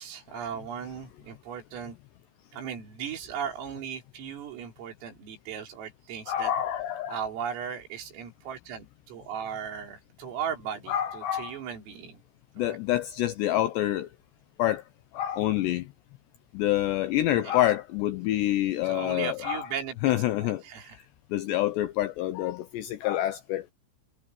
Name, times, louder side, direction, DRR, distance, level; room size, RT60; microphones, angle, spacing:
voice 1, 0.0-2.0 2.5-6.5 7.1-12.2 12.6-12.8 17.3-17.6 18.8-20.1 20.4-21.0, right 8 dB, 80° right, 6.8 m, -37 dB
voice 2, 6.3-7.2 10.9-11.6 12.6-14.1 14.6-14.8 15.1-15.8 16.5-19.7 20.0-20.6 21.3-23.6, left 13 dB, 80° left, 2.5 m, -27 dB
omnidirectional pair, 5.9 m